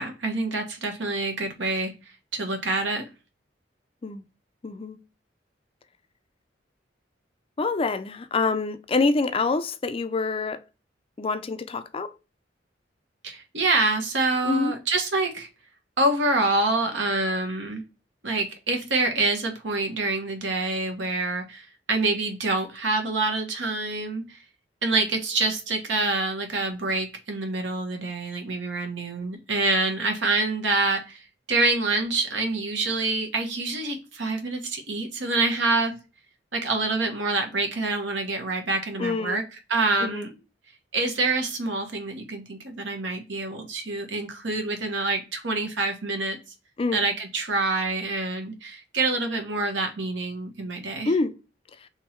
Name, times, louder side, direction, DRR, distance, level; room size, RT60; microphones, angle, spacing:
voice 1, 0.0-3.1 13.2-15.5 16.0-17.8 18.2-24.4 24.8-36.0 36.5-40.3 40.9-46.4 46.9-51.1, right 3 dB, 75° right, 1.2 m, -26 dB
voice 2, 4.6-5.0 7.6-10.6 11.2-12.1 14.4-14.7 39.0-39.4 40.0-40.3 46.8-47.1 51.0-51.3, left 3 dB, 30° left, 0.4 m, -26 dB
3.6 x 3.0 x 4.4 m
head